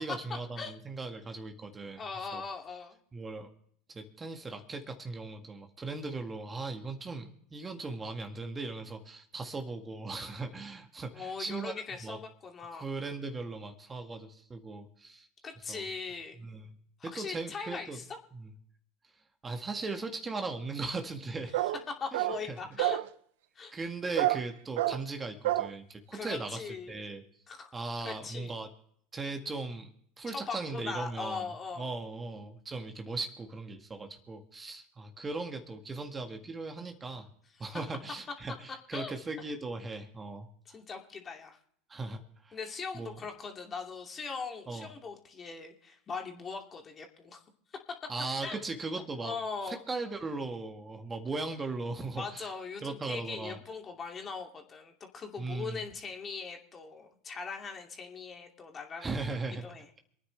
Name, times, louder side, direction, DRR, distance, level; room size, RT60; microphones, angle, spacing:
voice 1, 0.0-2.4 3.1-3.5 3.9-11.7 12.0-12.2 12.8-15.3 15.7-15.8 16.4-16.7 17.0-18.0 18.3-18.5 19.4-21.5 22.1-22.6 23.7-27.2 27.7-28.7 29.1-29.9 30.2-31.4 31.8-37.3 37.6-40.8 41.9-42.6 42.9-43.1 44.7-44.9 48.1-49.4 49.7-52.5 52.8-53.6 55.4-55.8 59.0-59.7, right 3 dB, 20° right, 5 dB, 1.8 m, -38 dB
voice 2, 2.0-3.0 11.1-12.8 15.4-16.4 17.0-18.2 21.9-23.0 23.5-23.7 26.1-27.0 27.5-27.7 28.0-28.6 30.3-31.9 37.6-37.7 38.9-39.1 40.7-41.6 42.5-47.4 48.4-48.6 49.2-49.8 52.1-59.1 59.6-59.9, left 5 dB, 30° left, 3 dB, 2.6 m, -40 dB
sound 1, 21.5-21.8 22.1-22.4 22.8-23.1 24.2-24.5 24.8-25.0 25.4-25.7, right 16 dB, 70° right, 0.6 m, -28 dB
27.5 x 9.7 x 3.3 m, 0.65 s
hypercardioid pair, 90°, 0 cm